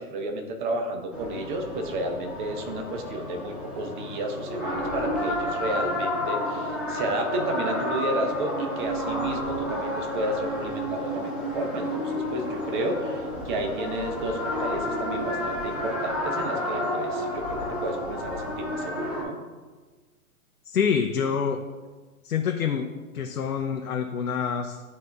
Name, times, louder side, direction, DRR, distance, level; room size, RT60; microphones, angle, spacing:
voice 1, 0.0-19.4, right 1 dB, 35° right, 4 dB, 0.9 m, -32 dB
sound 1, 1.1-19.2, left 1 dB, 5° right, 1.3 m, -31 dB
voice 2, 20.6-21.6 22.2-22.9 23.1-24.8, left 7 dB, 80° left, 2 dB, 0.8 m, -26 dB
11.0 x 4.1 x 2.3 m, 1.3 s
hypercardioid pair, 135°, 44 cm